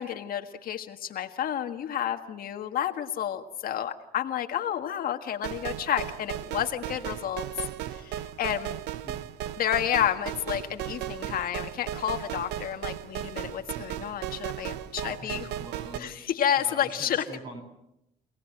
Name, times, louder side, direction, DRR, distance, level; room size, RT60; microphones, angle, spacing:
voice 1, 0.0-7.5 7.9-8.8 9.6-15.5 16.0-17.2, left 10 dB, 60° left, 6 dB, 1.6 m, -30 dB
sound 1, 5.4-16.0, right 12 dB, 85° right, 1.0 m, -36 dB
voice 2, 15.0-16.2 16.6-17.6, right 1 dB, 30° right, 5 dB, 7.8 m, -43 dB
28.0 x 18.5 x 7.8 m, 0.85 s
cardioid pair, 110°, 17 cm